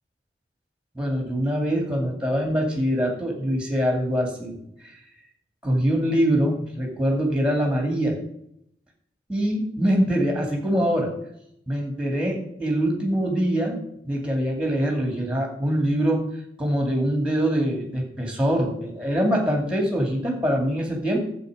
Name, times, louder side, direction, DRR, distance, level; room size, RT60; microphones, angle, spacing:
voice 1, 0.9-4.6 4.8-4.9 5.6-8.2 9.3-11.1 11.7-13.8 14.0-16.2 16.6-21.2, equal, 5° right, 1 dB, 2.5 m, -24 dB
10.5 x 8.0 x 5.1 m, 0.73 s
head